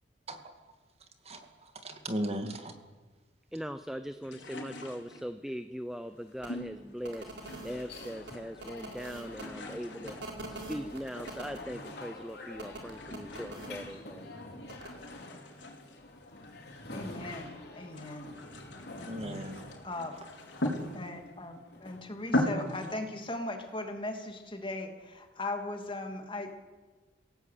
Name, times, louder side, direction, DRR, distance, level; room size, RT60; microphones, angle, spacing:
voice 1, 1.2-2.7 19.1-19.6, right 1 dB, 35° right, 6 dB, 2.4 m, -37 dB
voice 2, 3.5-7.4 7.6-14.3, equal, ahead, 9 dB, 0.7 m, -40 dB
sound 1, 4.2-5.5 6.4-7.9 8.2-8.8 9.1-12.2 12.8-14.4 14.8-17.4 17.8-21.4 21.8-21.9 22.2-23.0, left 1 dB, 90° left, 4.5 m, -39 dB
sound 2, 5.9-22.9, left 2 dB, 60° left, 4.2 m, -49 dB
sound 3, 6.4-6.5 7.0-9.4 10.0-11.6 12.6-13.7 14.7-14.9, right 2 dB, 80° right, 4.6 m, -44 dB
voice 3, 16.9-18.3 19.0-19.5 19.8-20.2 20.9-26.5, left 2 dB, 30° left, 4 dB, 2.8 m, -38 dB
27.0 x 17.5 x 8.5 m, 1.3 s
head